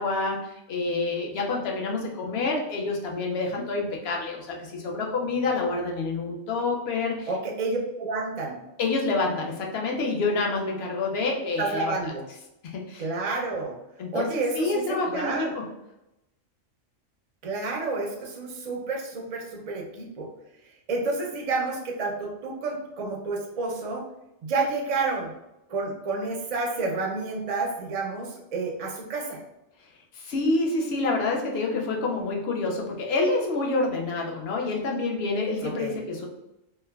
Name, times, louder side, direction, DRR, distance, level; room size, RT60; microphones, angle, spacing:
voice 1, 0.0-7.3 8.8-12.1 12.7-13.0 14.0-15.7 30.1-36.3, left 3 dB, 60° left, 0 dB, 0.7 m, -28 dB
voice 2, 7.3-8.6 11.6-12.2 13.0-13.8 14.1-15.5 17.4-20.3 20.9-24.0 24.4-25.3 25.7-29.4 35.6-35.9, right 3 dB, 65° right, -1 dB, 0.3 m, -30 dB
3.1 x 2.1 x 2.2 m, 0.90 s
omnidirectional pair, 1.4 m